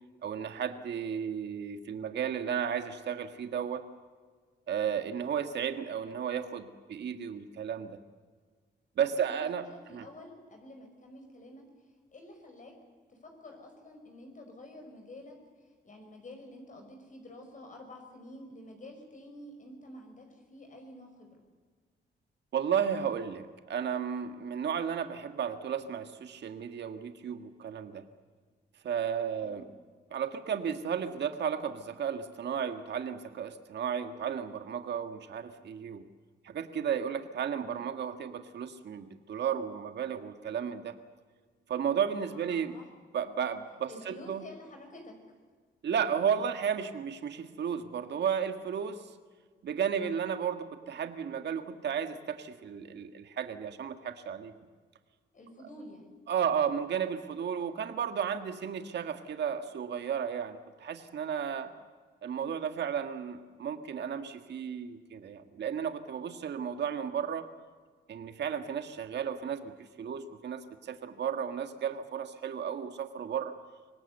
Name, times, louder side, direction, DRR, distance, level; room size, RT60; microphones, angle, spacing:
voice 1, 0.2-3.8 4.7-8.0 9.0-9.6 9.9-10.0 22.5-28.0 28.8-29.7 30.1-36.0 36.4-40.9 41.7-42.8 43.1-44.4 45.8-49.1 49.6-54.5 56.3-61.7 62.2-67.5 68.1-69.7 70.0-73.5, right 8 dB, 70° right, 8 dB, 1.7 m, -33 dB
voice 2, 9.2-11.6 12.1-12.7 13.1-15.3 15.6-21.4 29.4-29.6 42.3-42.9 43.9-45.4 55.3-56.1, left 1 dB, 45° left, 3 dB, 5.3 m, -49 dB
25.0 x 19.0 x 8.1 m, 1.6 s
cardioid pair, 90°, 18 cm